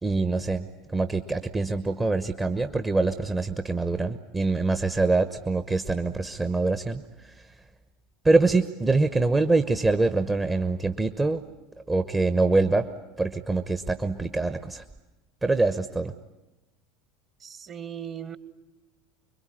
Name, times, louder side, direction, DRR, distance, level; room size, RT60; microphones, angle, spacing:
voice 1, 0.0-7.5 8.2-11.4 11.9-12.9 13.2-14.8 15.4-16.1, right 3 dB, 15° right, 10 dB, 1.0 m, -24 dB
voice 2, 17.4-18.4, right 9 dB, 35° right, 14 dB, 1.5 m, -38 dB
26.0 x 22.5 x 9.9 m, 1.0 s
figure-of-eight pair, 75°, 0 cm